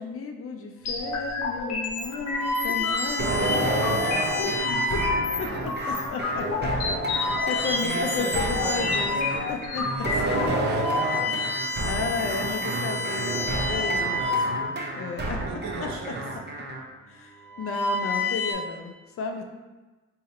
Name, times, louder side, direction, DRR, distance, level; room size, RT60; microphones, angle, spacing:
voice 1, 0.0-3.8 4.7-5.0 5.4-9.2 9.5-9.8 11.8-14.2 14.9-15.4 15.8-15.9 17.1-19.4, left 4 dB, 50° left, 4 dB, 0.5 m, -33 dB
sound 1, 0.9-10.5, left 3 dB, 65° left, 1.0 m, -30 dB
sound 2, 1.2-1.4 2.1-5.5 6.1-6.4 6.9-9.4 9.8-9.9 10.5-14.9 15.9-16.3 17.2-18.5, left 2 dB, 5° left, 1.1 m, -30 dB
sound 3, 3.2-16.8, right 1 dB, 35° right, 0.7 m, -30 dB
voice 2, 3.8-5.0 5.5-5.8 7.1-7.3 7.8-9.5 9.8-13.5 14.0-14.8 15.4-16.3, right 4 dB, 75° right, 2 dB, 0.7 m, -37 dB
2.9 x 2.7 x 4.2 m, 1.2 s
cardioid pair, 90°, 30 cm